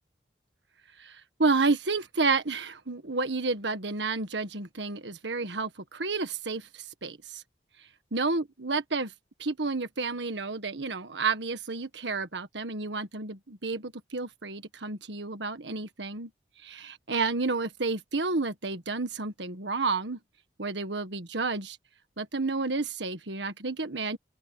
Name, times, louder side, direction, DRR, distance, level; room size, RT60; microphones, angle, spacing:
voice 1, 1.0-7.4 8.1-9.1 9.4-16.3 16.6-20.2 20.6-21.8 22.2-24.2, right 3 dB, 85° right, 1.6 m, -30 dB
open air
head